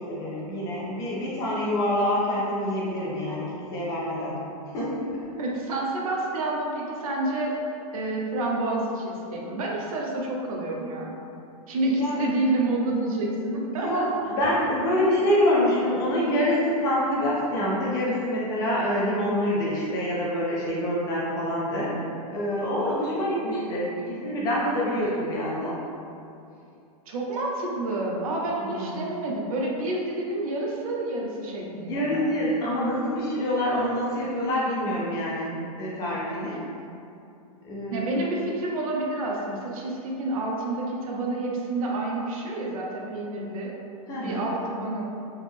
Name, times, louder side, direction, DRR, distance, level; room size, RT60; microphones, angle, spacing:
voice 1, 0.0-4.4 4.7-5.2 11.9-12.3 13.7-21.9 22.3-25.7 28.6-29.1 31.7-35.5 35.8-36.6 37.6-38.1 44.1-44.5, left 1 dB, 20° left, -6 dB, 0.4 m, -26 dB
voice 2, 5.4-7.6 7.9-11.1 11.7-14.1 27.1-32.2 37.9-43.7 44.2-45.0, right 2 dB, 65° right, -2 dB, 0.6 m, -29 dB
3.4 x 2.0 x 3.2 m, 2.6 s
supercardioid pair, 160°, 19 cm